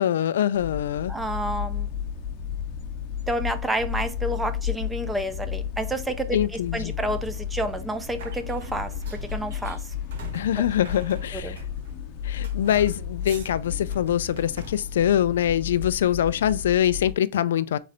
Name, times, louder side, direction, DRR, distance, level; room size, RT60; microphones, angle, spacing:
voice 1, 0.0-1.1 6.3-7.0 10.3-11.6 12.2-17.8, left 10 dB, 75° left, 0.3 m, -24 dB
sound 1, 0.5-17.1, left 8 dB, 35° left, 0.6 m, -33 dB
voice 2, 1.1-1.9 3.3-6.4 6.7-9.9 11.3-11.6, right 1 dB, 5° right, 0.4 m, -29 dB
sound 2, 8.2-12.0 12.4-13.5 13.9-14.8, right 4 dB, 70° right, 1.4 m, -45 dB
3.8 x 3.1 x 4.2 m
supercardioid pair, 160°, 0 cm